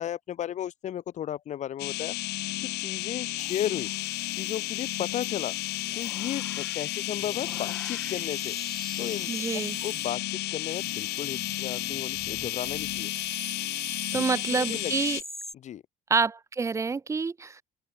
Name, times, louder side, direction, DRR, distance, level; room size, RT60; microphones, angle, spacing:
voice 1, 0.0-2.1 2.6-3.9 4.3-5.5 5.9-8.5 9.0-9.3 9.8-13.1 13.5-13.6 13.9-14.2 14.5-14.9 15.5-15.8, left 11 dB, 45° left, 3.5 m, -34 dB
sound 1, 1.8-15.2, left 18 dB, 90° left, 2.7 m, -33 dB
sound 2, 3.4-10.2 10.6-15.5, equal, ahead, 4.0 m, -44 dB
voice 2, 9.3-9.8 14.1-15.2 16.1-17.6, right 4 dB, 15° right, 1.1 m, -27 dB
open air
cardioid pair, 170°, 17 cm